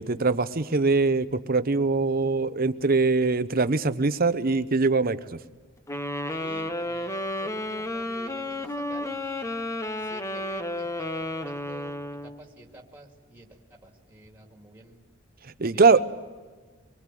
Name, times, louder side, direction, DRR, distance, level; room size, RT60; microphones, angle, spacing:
voice 1, 0.0-5.4 15.6-16.0, right 3 dB, 45° right, 13 dB, 0.8 m, -22 dB
sound 1, 5.9-12.4, left 1 dB, 15° left, 1.0 m, -32 dB
voice 2, 6.3-9.2 10.0-15.0 15.7-16.0, right 1 dB, 10° right, 1 dB, 2.4 m, -49 dB
25.0 x 21.5 x 7.6 m, 1.4 s
head